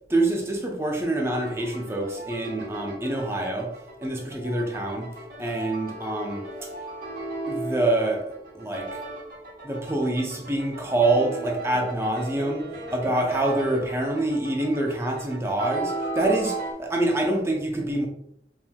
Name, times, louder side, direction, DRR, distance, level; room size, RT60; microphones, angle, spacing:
voice 1, 0.1-3.7 4.0-5.1 5.4-6.7 7.5-8.3 8.5-9.0 9.6-18.1, right 2 dB, 15° right, 0.6 m, -26 dB
sound 1, 1.3-16.7, right 2 dB, 50° right, 1.4 m, -36 dB
4.5 x 3.6 x 2.3 m
head